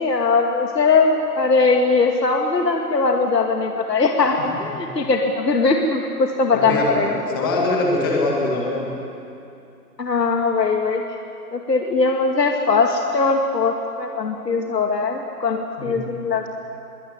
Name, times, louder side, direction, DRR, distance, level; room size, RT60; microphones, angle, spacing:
voice 1, 0.0-7.5 10.0-11.0 11.5-16.5, left 4 dB, 80° left, 2 dB, 2.2 m, -20 dB
voice 2, 6.5-8.9 15.8-15.9, left 2 dB, 15° left, -2 dB, 1.9 m, -23 dB
22.5 x 17.5 x 9.8 m, 2.7 s
hypercardioid pair, 175°, 48 cm